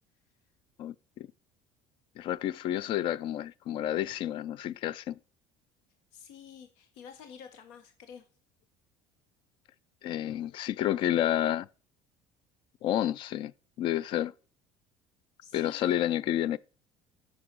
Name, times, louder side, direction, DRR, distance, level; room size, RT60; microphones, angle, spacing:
voice 1, 0.8-1.3 2.2-5.2 10.0-11.7 12.8-13.5 13.8-14.3 15.5-16.6, left 12 dB, 40° left, 0.4 m, -30 dB
voice 2, 6.1-8.2 15.4-16.0, left 7 dB, 85° left, 1.3 m, -49 dB
8.6 x 6.2 x 5.3 m
cardioid pair, 170°, 13 cm